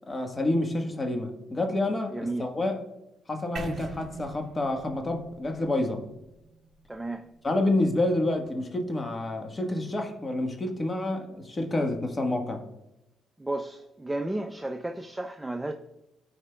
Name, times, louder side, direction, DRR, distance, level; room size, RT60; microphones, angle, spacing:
voice 1, 0.1-2.8 3.3-6.0 7.4-12.6, left 2 dB, 25° left, 1.3 m, -28 dB
voice 2, 2.1-2.5 6.9-7.3 13.4-15.7, right 2 dB, 10° right, 0.5 m, -33 dB
sound 1, 3.6-7.5, right 3 dB, 50° right, 1.3 m, -42 dB
13.5 x 4.8 x 2.3 m
cardioid pair, 90°, 0 cm